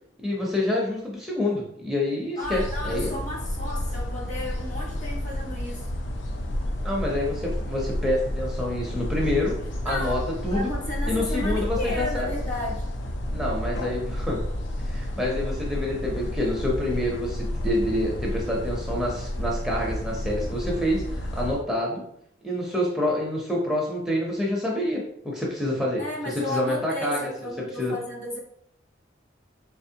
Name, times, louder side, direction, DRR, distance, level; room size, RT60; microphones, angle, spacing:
voice 1, 0.2-3.2 6.8-9.5 9.8-10.7 11.0-12.3 13.3-14.4 14.8-22.0 22.4-27.9, left 1 dB, ahead, -4 dB, 0.6 m, -27 dB
sound 1, 2.4-21.6, left 1 dB, 75° left, 0.5 m, -31 dB
voice 2, 2.4-6.0 9.8-12.9 26.0-28.4, left 1 dB, 40° left, -2 dB, 1.1 m, -33 dB
4.1 x 3.4 x 2.7 m, 0.73 s
head